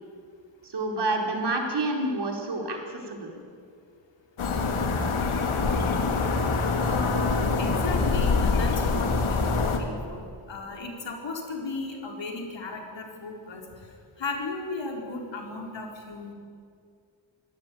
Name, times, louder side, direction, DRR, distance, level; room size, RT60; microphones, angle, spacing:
voice 1, 0.6-3.3, right 2 dB, 55° right, 1 dB, 4.2 m, -28 dB
sound 1, 4.4-9.8, left 4 dB, 85° left, 2.6 m, -25 dB
voice 2, 6.9-13.6 14.2-16.3, left 3 dB, 65° left, 1 dB, 4.4 m, -36 dB
24.0 x 17.0 x 9.2 m, 2.3 s
wide cardioid pair, 125°, 48 cm